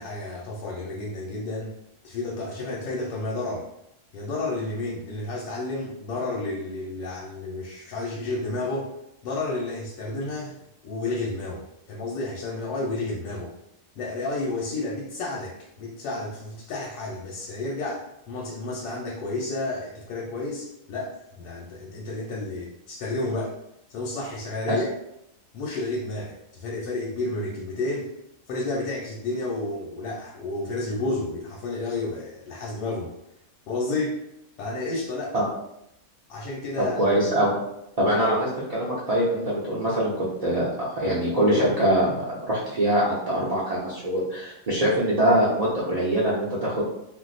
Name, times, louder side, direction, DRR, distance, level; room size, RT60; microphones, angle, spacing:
voice 1, 0.0-1.7 2.0-3.7 4.1-8.9 9.2-10.6 10.8-13.5 14.0-23.5 23.9-24.9 25.5-28.1 28.5-33.1 33.7-34.2 34.6-35.4 36.3-37.0 38.2-38.3, left 2 dB, 90° left, -3 dB, 1.2 m, -31 dB
voice 2, 36.8-37.6 38.0-40.7 40.9-46.8, right 1 dB, 75° right, -8 dB, 0.3 m, -23 dB
2.6 x 2.0 x 4.0 m, 0.82 s
omnidirectional pair, 1.6 m